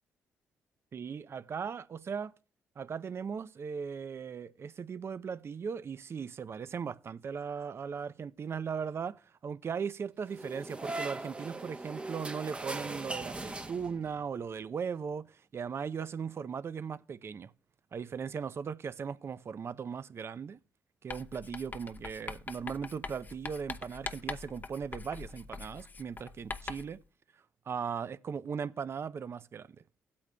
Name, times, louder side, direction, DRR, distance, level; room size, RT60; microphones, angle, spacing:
voice 1, 0.9-2.3 2.8-17.5 17.9-20.6 21.0-27.0 27.7-29.7, right 6 dB, 50° right, 0.5 m, -38 dB
sound 1, 10.3-14.2, right 2 dB, 20° right, 0.8 m, -40 dB
Writing, 21.1-27.0, left 4 dB, 35° left, 0.7 m, -43 dB
16.5 x 8.5 x 2.2 m
supercardioid pair, 60°, 6 cm